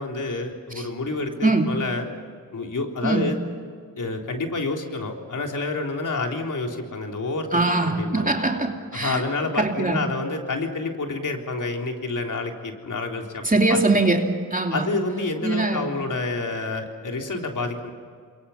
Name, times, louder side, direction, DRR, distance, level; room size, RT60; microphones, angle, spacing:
voice 1, 0.0-2.1 2.5-3.4 4.0-8.3 8.9-13.4 14.7-17.9, left 3 dB, 55° left, 2 dB, 3.7 m, -28 dB
voice 2, 1.4-1.7 3.0-3.4 7.5-9.2 9.6-10.1 13.4-14.9 15.4-16.0, right 2 dB, 20° right, 2 dB, 2.9 m, -22 dB
28.5 x 22.5 x 5.8 m, 2.1 s
cardioid pair, 50°, 36 cm